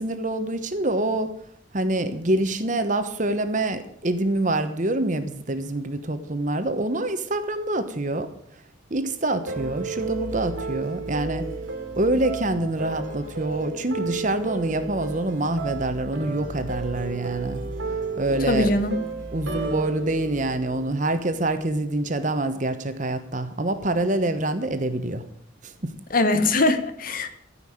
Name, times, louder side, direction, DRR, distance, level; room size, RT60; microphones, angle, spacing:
voice 1, 0.0-1.3 1.7-8.3 8.9-11.5 12.0-17.6 18.2-18.7 19.3-25.2 25.6-25.9, right 2 dB, 40° right, 9 dB, 1.1 m, -26 dB
sound 1, 9.5-21.6, right 4 dB, 85° right, 2.6 m, -33 dB
voice 2, 18.5-19.0 26.1-27.4, left 2 dB, 45° left, 9 dB, 1.1 m, -22 dB
14.0 x 5.7 x 8.6 m, 0.69 s
head